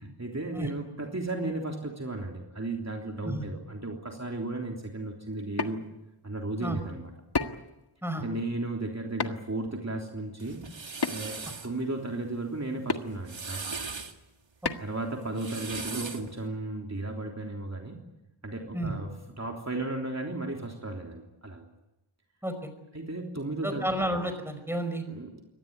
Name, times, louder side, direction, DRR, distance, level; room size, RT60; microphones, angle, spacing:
voice 1, 0.2-5.8 6.2-7.1 8.1-10.7 11.1-11.4 11.6-13.7 14.8-18.0 18.4-21.7 22.9-23.8 25.1-25.3, right 2 dB, 30° right, 1 dB, 3.3 m, -34 dB
sound 1, 5.3-5.7 7.3-7.7 9.2-9.5 11.0-11.4 12.9-13.0 14.6-14.9, left 4 dB, 50° left, 1.7 m, -30 dB
sound 2, 10.4-11.7 13.1-14.1 15.2-16.3, right 4 dB, 65° right, 2.2 m, -38 dB
voice 2, 23.6-25.0, right 1 dB, 5° right, 8 dB, 5.3 m, -31 dB
24.0 x 19.0 x 9.6 m, 0.96 s
wide cardioid pair, 65°, 49 cm